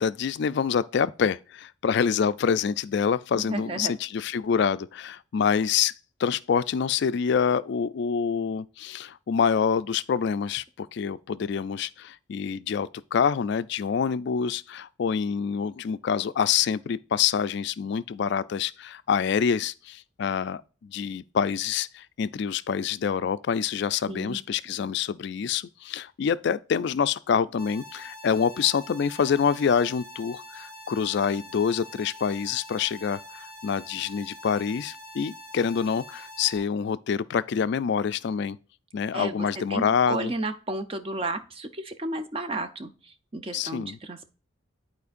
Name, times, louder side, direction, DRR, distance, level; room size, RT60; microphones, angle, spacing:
voice 1, 0.0-5.9 6.2-38.6 38.9-40.3 43.5-44.0, left 7 dB, 55° left, 0.3 m, -26 dB
voice 2, 3.3-3.9 24.1-24.4 39.1-44.3, right 2 dB, 25° right, 0.5 m, -33 dB
sound 1, 27.6-36.6, left 1 dB, 5° left, 1.4 m, -45 dB
11.0 x 4.4 x 2.5 m
head